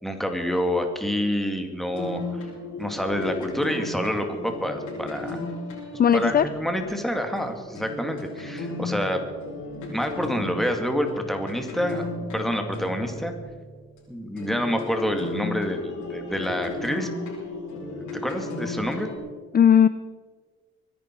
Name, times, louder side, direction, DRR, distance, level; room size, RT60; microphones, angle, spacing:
voice 1, 0.0-2.2 2.8-5.4 6.1-9.2 9.9-12.0 12.3-13.3 14.1-17.1 17.7-19.1, equal, ahead, 4 dB, 2.3 m, -27 dB
sound 1, 1.9-14.0 14.4-19.2, left 2 dB, 75° left, 5.8 m, -35 dB
voice 2, 6.0-6.4 19.5-19.9, left 8 dB, 30° left, 15 dB, 0.5 m, -16 dB
23.0 x 10.5 x 4.6 m, 1.5 s
cardioid pair, 90°, 30 cm